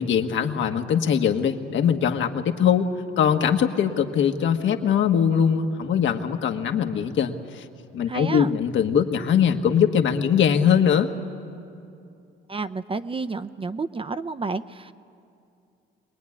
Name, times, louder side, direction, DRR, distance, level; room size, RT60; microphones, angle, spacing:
voice 1, 0.0-2.9 3.2-7.6 7.9-11.1, left 8 dB, 70° left, 6 dB, 1.5 m, -21 dB
voice 2, 8.1-8.5 12.5-14.9, right 4 dB, 25° right, 12 dB, 0.7 m, -30 dB
23.5 x 20.5 x 9.7 m, 2.5 s
cardioid pair, 90°, 20 cm